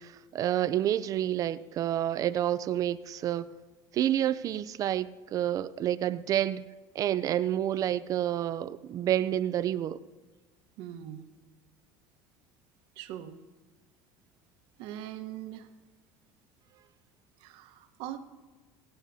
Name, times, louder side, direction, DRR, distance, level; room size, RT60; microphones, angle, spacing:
voice 1, 0.0-3.5 3.9-6.6 6.9-10.0, right 11 dB, 45° right, 0.4 m, -29 dB
voice 2, 10.8-11.2 13.0-13.4 14.8-15.7 17.4-18.2, right 12 dB, 70° right, 1.1 m, -41 dB
21.5 x 9.1 x 2.7 m
supercardioid pair, 120°, 9 cm